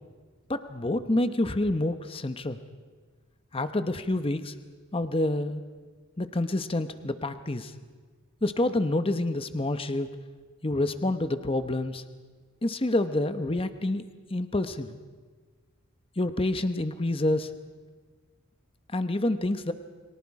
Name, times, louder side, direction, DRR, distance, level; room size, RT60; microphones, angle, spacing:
voice 1, 0.5-2.6 3.5-4.5 4.9-5.6 6.2-7.7 8.4-10.1 10.6-12.0 12.6-15.0 16.2-17.5 18.9-19.7, left 1 dB, 25° left, 10 dB, 0.9 m, -28 dB
29.5 x 23.5 x 4.8 m, 1.5 s
head